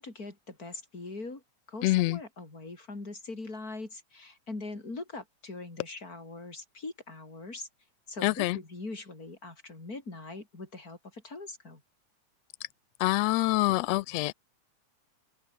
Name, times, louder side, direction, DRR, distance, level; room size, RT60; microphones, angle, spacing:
voice 1, 0.0-1.4 1.7-7.7 8.1-11.8, left 3 dB, 25° left, 5.3 m, -42 dB
voice 2, 1.8-2.2 8.2-8.6 13.0-14.3, left 19 dB, 85° left, 1.5 m, -26 dB
open air
omnidirectional pair, 3.5 m